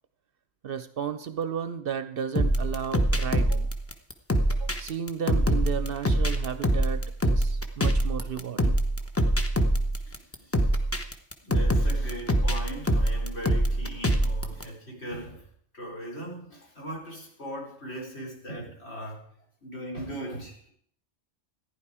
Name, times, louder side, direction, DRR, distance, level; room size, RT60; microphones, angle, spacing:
voice 1, 0.6-3.7 4.6-8.8, right 7 dB, 60° right, 12 dB, 0.8 m, -33 dB
sound 1, 2.4-14.6, right 1 dB, 15° left, 0.9 m, -24 dB
voice 2, 10.0-10.7 11.4-19.3 19.6-20.7, right 1 dB, 65° left, -2 dB, 4.2 m, -39 dB
14.5 x 10.5 x 4.8 m, 0.62 s
omnidirectional pair, 1.2 m